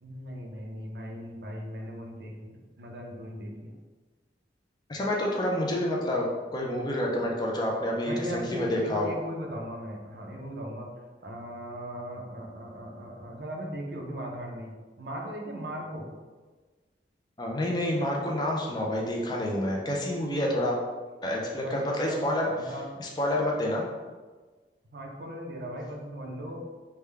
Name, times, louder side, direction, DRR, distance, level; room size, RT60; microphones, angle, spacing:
voice 1, 0.0-3.7 8.0-10.9 11.2-14.7 15.0-16.1 21.5-22.2 22.5-23.0 24.9-26.6, equal, 65° right, 0 dB, 0.6 m, -38 dB
voice 2, 4.9-9.1 17.4-20.8 21.2-22.7 23.0-23.9, left 1 dB, 25° left, -1 dB, 0.4 m, -28 dB
3.4 x 2.2 x 3.3 m, 1.3 s
head